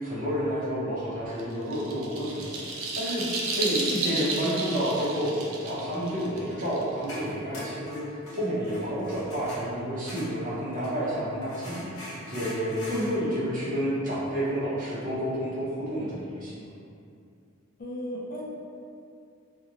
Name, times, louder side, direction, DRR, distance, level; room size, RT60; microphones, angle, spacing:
voice 1, 0.0-3.2 3.6-12.0 12.3-16.6, equal, 40° right, -8 dB, 0.7 m, -30 dB
sound 1, 1.4-7.2, right 3 dB, 70° right, 0.4 m, -32 dB
voice 2, 3.5-4.5 17.8-18.4, equal, 40° left, -5 dB, 0.4 m, -37 dB
sound 2, 6.7-11.0 11.4-13.2, left 1 dB, 80° left, 0.8 m, -41 dB
2.9 x 2.1 x 2.4 m, 2.5 s
head